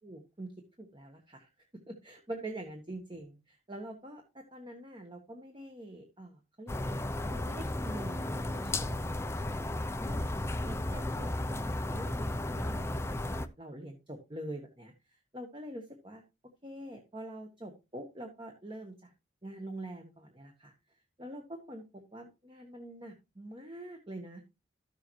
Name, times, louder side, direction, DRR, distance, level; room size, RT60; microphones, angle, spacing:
voice 1, 0.0-0.5 0.8-7.0 7.3-9.7 10.0-10.3 10.6-16.2 16.6-19.1 19.4-20.7 21.2-24.4, right 1 dB, 25° right, 3 dB, 1.2 m, -45 dB
sound 1, 6.7-13.5, left 1 dB, 15° left, 0.5 m, -34 dB
13.0 x 6.7 x 3.1 m, 0.27 s
head